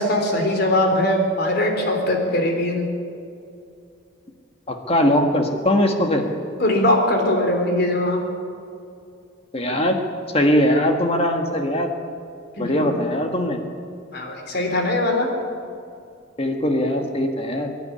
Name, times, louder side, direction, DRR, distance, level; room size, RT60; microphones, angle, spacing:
voice 1, 0.0-2.9 6.6-8.2 12.6-13.0 14.1-15.3, left 1 dB, 55° left, 3 dB, 3.7 m, -21 dB
voice 2, 4.7-6.2 9.5-10.0 10.3-11.9 12.6-13.6 16.4-17.7, left 1 dB, 30° left, 4 dB, 1.6 m, -20 dB
23.0 x 11.5 x 9.8 m, 2.5 s
head